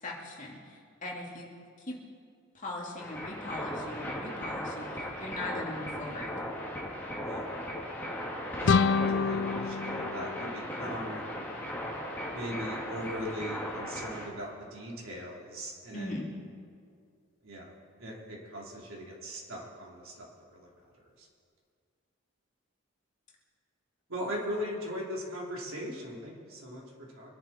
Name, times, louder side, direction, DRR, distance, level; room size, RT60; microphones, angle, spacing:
voice 1, 0.0-1.5 1.8-2.0 2.5-6.3 15.9-16.3, left 1 dB, 35° left, -3 dB, 2.6 m, -40 dB
sound 1, 3.0-14.3, equal, 10° left, 2.4 m, -37 dB
sound 2, 8.6-11.4, left 5 dB, 55° left, 0.4 m, -28 dB
voice 2, 8.6-11.2 12.3-16.1 17.4-20.7 21.2-21.3 24.1-27.4, equal, 75° right, -3 dB, 3.5 m, -39 dB
25.0 x 11.0 x 4.4 m, 2.3 s
head